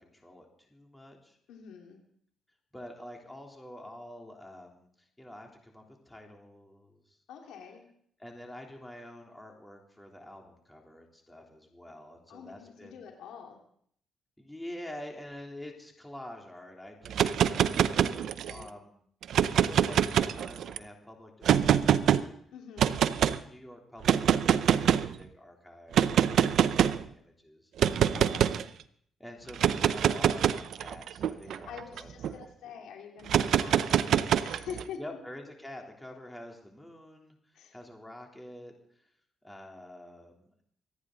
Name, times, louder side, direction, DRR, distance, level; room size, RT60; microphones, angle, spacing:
voice 1, 0.0-1.4 2.7-7.2 8.2-13.0 14.4-19.0 19.5-22.3 23.0-27.7 29.2-32.7 35.0-38.7 39.4-40.6, left 1 dB, 10° left, 1 dB, 3.4 m, -47 dB
voice 2, 1.5-2.0 7.3-7.8 12.3-13.6 18.4-18.7 22.5-23.0 28.1-28.6 31.4-35.0 37.5-37.7, left 7 dB, 85° left, 2 dB, 2.6 m, -46 dB
sound 1, 17.0-18.6 19.2-20.8 21.4-22.2 22.8-23.4 24.0-25.1 25.9-27.0 27.8-28.6 29.5-32.3 33.3-34.8, right 9 dB, 70° right, 0.6 m, -25 dB
25.5 x 9.8 x 4.0 m, 0.65 s
cardioid pair, 90°, 0 cm